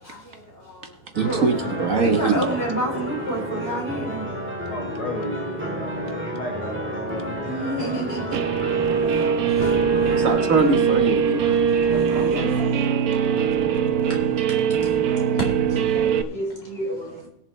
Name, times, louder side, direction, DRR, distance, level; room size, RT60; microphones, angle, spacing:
voice 1, 0.0-1.5 2.0-4.3 5.7-6.3 6.9-8.5 8.8-10.3 11.2-12.8 14.0-17.3, right 1 dB, 40° left, 4.0 m, -32 dB
sound 1, 1.1-10.8, equal, 10° right, 1.8 m, -31 dB
voice 2, 1.1-2.4 10.1-11.7, right 4 dB, 60° right, 1.6 m, -22 dB
voice 3, 4.6-8.0, left 2 dB, 25° left, 1.7 m, -34 dB
Guitar, 8.3-16.2, right 7 dB, 75° right, 1.3 m, -21 dB
21.0 x 7.4 x 3.2 m
omnidirectional pair, 1.6 m